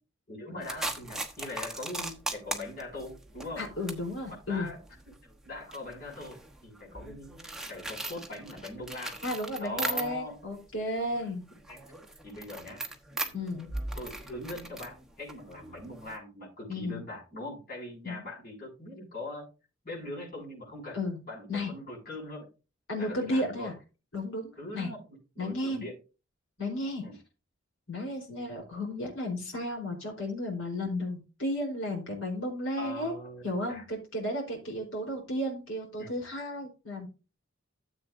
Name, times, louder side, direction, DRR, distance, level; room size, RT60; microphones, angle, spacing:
voice 1, 0.3-3.7 4.3-4.8 5.4-9.2 9.6-10.4 11.7-11.8 12.2-12.8 13.1-13.4 13.9-19.5 19.8-21.0 21.2-22.5 23.0-23.7 24.6-26.0 27.0-27.2 32.8-33.8 36.0-36.2, left 2 dB, 45° left, -5 dB, 6.7 m, -41 dB
sound 1, 0.6-10.4 10.8-16.2, right 2 dB, 5° right, 1.2 m, -39 dB
voice 2, 3.6-4.7 9.2-11.4 13.3-13.7 16.7-17.0 18.0-18.2 20.9-21.2 21.5-21.7 22.9-23.7 24.1-24.9 25.4-25.8 26.6-27.0 27.9-33.1 33.4-37.1, left 1 dB, 75° left, 0 dB, 4.0 m, -33 dB
14.0 x 7.8 x 2.6 m, 0.31 s
head